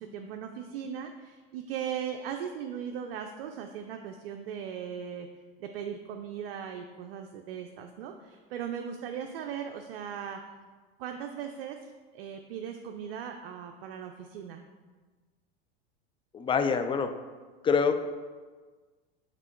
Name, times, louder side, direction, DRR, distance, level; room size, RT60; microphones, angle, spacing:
voice 1, 0.0-5.3 5.6-10.4 11.0-11.8 12.1-14.6, right 8 dB, 75° right, 4 dB, 0.5 m, -38 dB
voice 2, 16.3-17.1 17.6-17.9, left 5 dB, 15° left, 8 dB, 0.3 m, -25 dB
6.0 x 3.7 x 4.4 m, 1.4 s
hypercardioid pair, 105°, 31 cm